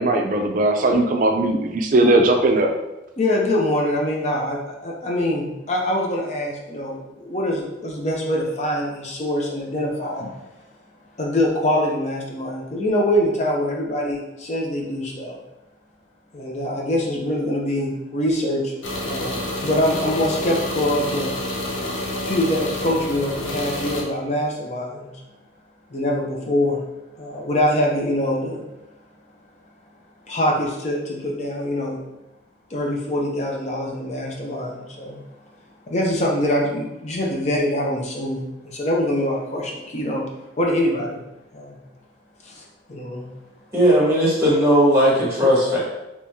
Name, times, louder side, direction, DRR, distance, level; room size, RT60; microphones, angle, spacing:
voice 1, 0.0-2.7, right 2 dB, 40° right, 3 dB, 0.4 m, -18 dB
voice 2, 3.2-10.4 11.2-15.4 16.3-18.7 19.0-21.3 22.3-25.2 25.9-26.8 27.2-28.6 30.3-32.0 32.7-35.2 35.9-40.2 40.6-41.2 41.5-41.8 42.4-42.6 42.9-43.3, left 1 dB, 35° left, -1 dB, 0.6 m, -24 dB
sound 1, 18.8-24.0, left 1 dB, 85° left, 0.7 m, -28 dB
voice 3, 43.7-45.8, equal, 15° right, -7 dB, 1.3 m, -17 dB
3.0 x 2.9 x 3.4 m, 0.98 s
head